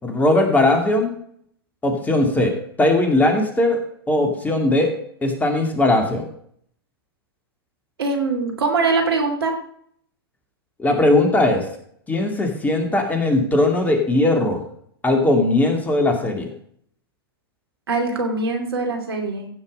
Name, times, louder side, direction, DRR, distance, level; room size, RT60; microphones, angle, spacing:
voice 1, 0.0-1.1 1.8-2.5 2.8-3.8 4.1-4.9 5.2-6.2 10.8-11.7 12.1-14.6 15.0-16.5, left 2 dB, 10° left, 4 dB, 2.3 m, -19 dB
voice 2, 8.0-9.6 17.9-19.5, right 3 dB, 75° right, 4 dB, 2.7 m, -22 dB
15.5 x 5.6 x 5.3 m, 0.64 s
hypercardioid pair, 105°, 13 cm